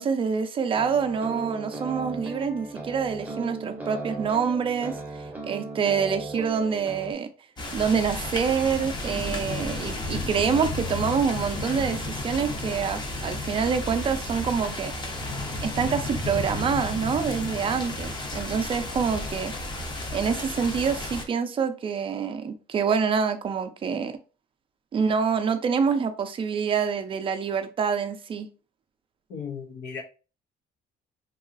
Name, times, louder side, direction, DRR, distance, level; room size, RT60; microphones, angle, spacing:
voice 1, 0.0-5.0 5.4-7.3 7.7-14.9 15.6-19.5 20.1-24.1 24.9-28.5, right 6 dB, 30° right, 0.4 m, -26 dB
sound 1, 0.7-7.1, right 2 dB, 10° right, 0.7 m, -37 dB
sound 2, 7.6-21.2, left 2 dB, 25° left, 0.7 m, -32 dB
voice 2, 29.3-30.0, left 6 dB, 85° left, 0.8 m, -36 dB
2.9 x 2.3 x 2.5 m
cardioid pair, 110°, 17 cm